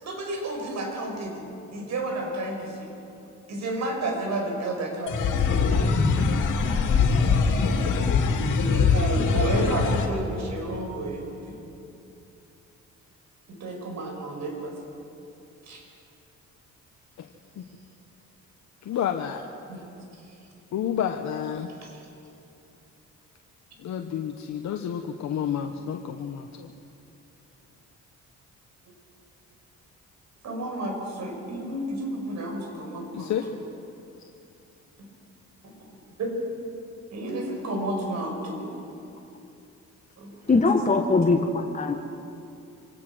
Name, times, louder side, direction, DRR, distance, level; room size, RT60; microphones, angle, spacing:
voice 1, 0.0-2.9 3.5-6.0 8.7-11.6 13.5-14.7 15.7-15.8 19.7-19.8 30.4-33.3 35.8-36.3 37.1-38.7 40.2-40.6, right 2 dB, 65° right, 1 dB, 5.8 m, -32 dB
sound 1, 5.1-10.1, left 5 dB, 85° left, 2.5 m, -22 dB
voice 2, 18.8-19.4 20.7-21.7 23.8-26.7 33.1-33.5 34.2-34.3, left 9 dB, 65° left, 5 dB, 1.1 m, -30 dB
voice 3, 40.5-41.9, left 3 dB, 25° left, 2 dB, 1.5 m, -21 dB
26.0 x 18.5 x 6.3 m, 2.7 s
cardioid pair, 90°, 30 cm